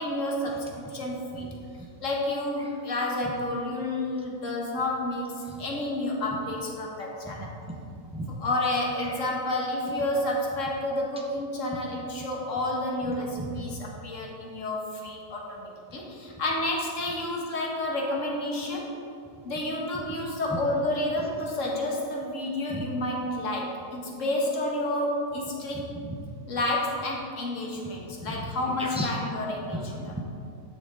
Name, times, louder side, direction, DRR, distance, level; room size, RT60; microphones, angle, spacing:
voice 1, 0.0-1.5 2.0-7.5 8.3-18.9 19.4-25.9 26.5-30.2, left 1 dB, 55° left, -1 dB, 1.5 m, -30 dB
voice 2, 7.7-8.4 9.0-9.3 13.4-13.8 22.7-22.8 25.7-26.2 28.2-29.1 29.7-30.2, equal, 10° right, -1 dB, 0.4 m, -36 dB
9.9 x 6.1 x 3.8 m, 2.5 s
omnidirectional pair, 1.7 m